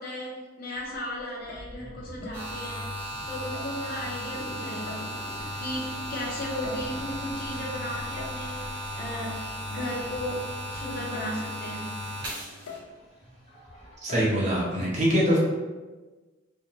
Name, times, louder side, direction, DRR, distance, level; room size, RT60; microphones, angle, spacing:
voice 1, 0.0-5.2 5.6-9.4 9.7-11.9, equal, 45° left, -4 dB, 0.6 m, -35 dB
sound 1, 0.7-14.0, equal, ahead, 1.2 m, -46 dB
sound 2, 1.3-1.8 2.2-2.5 3.5-3.9 4.9-5.4 6.4-7.1 8.2-8.5 9.8-9.9 10.5-10.6 11.1-11.5 12.7-13.0 14.1-14.3, left 5 dB, 85° left, 0.3 m, -44 dB
sound 3, 2.3-12.8, equal, 60° right, 1.0 m, -36 dB
voice 2, 14.0-15.4, equal, 35° right, -6 dB, 0.6 m, -23 dB
2.4 x 2.2 x 2.9 m, 1.3 s
head